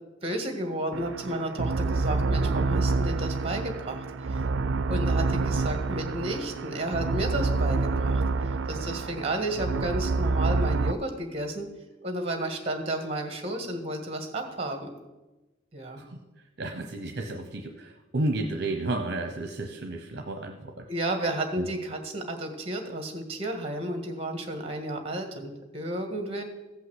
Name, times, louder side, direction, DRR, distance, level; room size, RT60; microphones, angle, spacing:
voice 1, 0.2-4.4 4.9-8.2 8.7-11.7 12.0-14.9 15.7-16.0 20.9-26.4, right 1 dB, 30° right, 5 dB, 1.7 m, -32 dB
sound 1, 0.9-10.9, right 3 dB, 70° right, 0.4 m, -27 dB
voice 2, 16.6-20.8 21.6-21.7, right 2 dB, 55° right, 4 dB, 0.9 m, -32 dB
15.0 x 5.6 x 8.0 m, 1.1 s
head